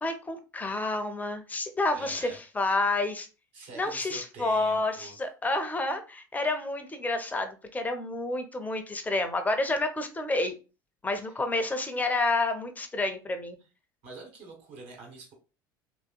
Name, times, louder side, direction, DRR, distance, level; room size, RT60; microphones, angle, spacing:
voice 1, 0.0-3.3 3.8-10.5 11.0-13.6, left 2 dB, 15° left, 7 dB, 0.7 m, -29 dB
voice 2, 1.9-2.4 3.5-5.2 11.2-11.4 14.0-15.3, right 3 dB, 55° right, 1 dB, 1.6 m, -46 dB
3.0 x 2.9 x 2.3 m, 0.33 s
hypercardioid pair, 75°, 11 cm